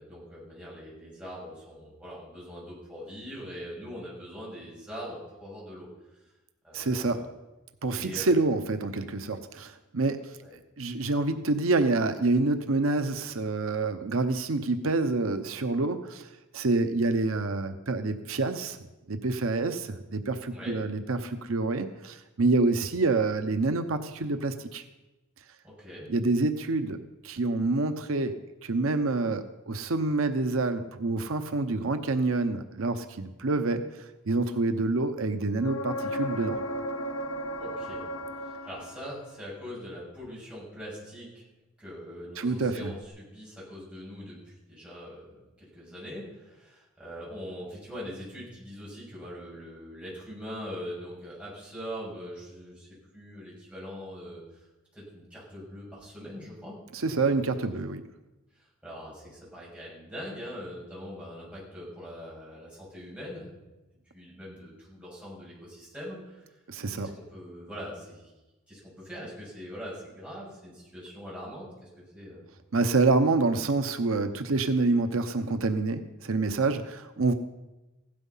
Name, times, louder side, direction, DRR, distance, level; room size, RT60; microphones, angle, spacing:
voice 1, 0.0-6.2 6.6-7.2 7.9-8.4 10.4-10.5 20.5-20.8 25.6-26.1 37.6-38.0 38.4-41.5 41.8-54.4 54.9-56.8 57.0-57.8 58.5-63.5 64.1-66.6 67.0-68.3 68.7-72.4, equal, 5° right, -7 dB, 7.0 m, -42 dB
voice 2, 6.7-7.2 7.8-10.2 10.8-18.8 19.1-24.8 26.1-27.0 27.2-33.8 34.3-36.6 42.4-42.9 56.9-58.0 66.7-67.1 72.7-77.3, right 3 dB, 85° right, 8 dB, 0.9 m, -27 dB
sound 1, 35.6-39.4 43.0-43.1, equal, 65° left, 1.4 m, -34 dB
16.0 x 12.0 x 5.6 m, 1.1 s
head